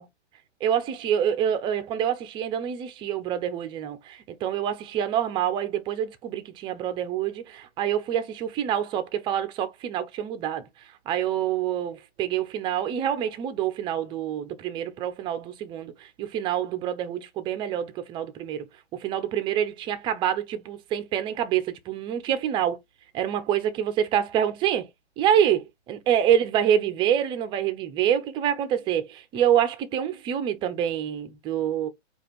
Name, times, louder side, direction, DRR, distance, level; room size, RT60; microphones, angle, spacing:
voice 1, 0.6-10.7 11.1-18.7 18.9-22.8 23.1-24.9 25.2-31.9, right 9 dB, 15° right, 0.6 m, -26 dB
4.9 x 2.4 x 4.3 m
hypercardioid pair, 125°, 36 cm